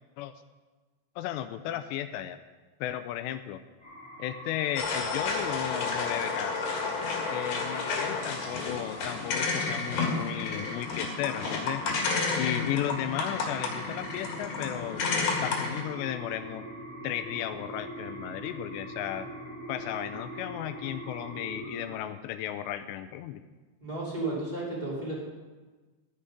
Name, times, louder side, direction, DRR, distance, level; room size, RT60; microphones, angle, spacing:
voice 1, 1.2-2.4 2.8-3.6 4.2-6.7 7.3-11.8 12.4-15.0 15.4-16.7 17.0-19.3 19.7-23.4, left 12 dB, 85° left, 10 dB, 2.6 m, -34 dB
sound 1, 3.8-21.9, right 1 dB, 10° left, 1.8 m, -43 dB
sound 2, 4.8-15.8, left 4 dB, 55° left, 3.0 m, -31 dB
voice 2, 23.8-25.2, right 2 dB, 10° right, -6 dB, 2.7 m, -33 dB
13.5 x 9.9 x 5.1 m, 1.3 s
omnidirectional pair, 5.3 m